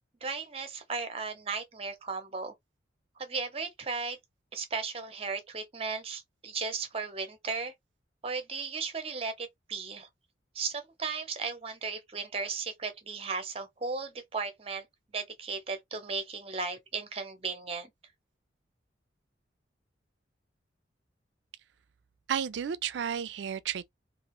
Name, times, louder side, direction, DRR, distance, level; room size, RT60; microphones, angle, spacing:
voice 1, 0.2-2.5 3.2-4.2 4.5-7.7 8.2-10.1 10.5-14.9 15.1-17.9, right 4 dB, 30° right, 0.7 m, -36 dB
voice 2, 22.3-23.9, right 8 dB, 70° right, 0.4 m, -32 dB
2.9 x 2.4 x 2.9 m
head